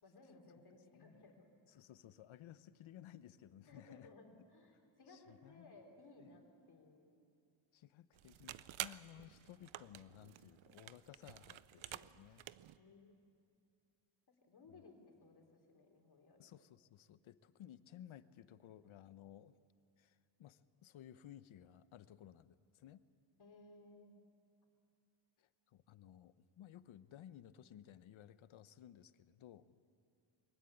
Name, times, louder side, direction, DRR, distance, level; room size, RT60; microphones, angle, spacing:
voice 1, 0.0-1.8 3.7-7.2 12.8-13.1 14.3-14.9 15.2-16.4 23.4-24.1, left 2 dB, 55° left, 2 dB, 3.9 m, -61 dB
voice 2, 0.9-1.2 1.7-4.1 5.1-5.7 6.2-6.4 7.7-12.5 14.7-14.8 16.4-19.6 20.0-23.0 25.4-29.8, left 11 dB, 80° left, 14 dB, 0.9 m, -58 dB
sound 1, 8.1-12.8, right 13 dB, 75° right, 0.7 m, -50 dB
22.0 x 16.5 x 9.9 m, 2.3 s
cardioid pair, 105°, 47 cm